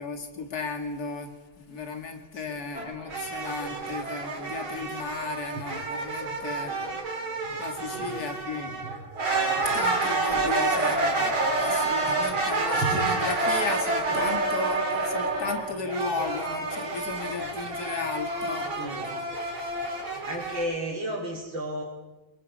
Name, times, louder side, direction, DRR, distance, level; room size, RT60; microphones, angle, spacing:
voice 1, 0.0-6.9 7.6-8.8 9.6-11.3 11.6-18.7, left 4 dB, 50° left, 5 dB, 2.8 m, -35 dB
sound 1, 2.7-20.6, right 3 dB, 85° right, 4.3 m, -28 dB
voice 2, 6.4-7.0 7.8-8.3 10.4-10.6 18.8-19.2 20.2-21.8, right 1 dB, 70° right, -5 dB, 4.2 m, -34 dB
27.5 x 22.5 x 5.5 m, 1.2 s
omnidirectional pair, 2.2 m